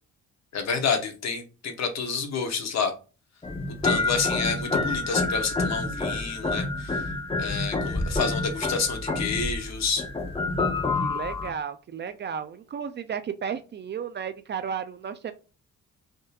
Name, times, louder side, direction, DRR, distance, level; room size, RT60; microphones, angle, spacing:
voice 1, 0.5-2.9 3.8-7.0 7.4-10.0, left 5 dB, 60° left, 6 dB, 0.9 m, -29 dB
sound 1, 3.4-11.5, left 2 dB, 20° left, 0.8 m, -28 dB
voice 2, 11.0-15.3, right 7 dB, 35° right, 11 dB, 0.4 m, -33 dB
3.6 x 2.6 x 2.4 m, 0.33 s
cardioid pair, 90°, 30 cm